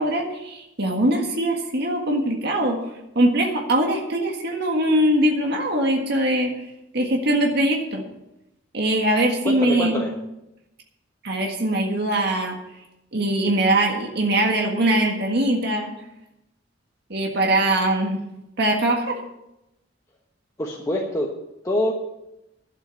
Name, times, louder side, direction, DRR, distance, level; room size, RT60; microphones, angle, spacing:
voice 1, 0.0-2.8 3.2-6.5 6.9-8.0 8.7-10.0 11.2-12.6 13.1-15.9 17.1-18.2 18.6-19.2, right 1 dB, 55° right, 1 dB, 1.7 m, -22 dB
voice 2, 9.4-10.1 20.6-21.3 21.6-21.9, left 1 dB, 15° left, -2 dB, 1.2 m, -25 dB
12.0 x 7.8 x 6.9 m, 0.89 s
head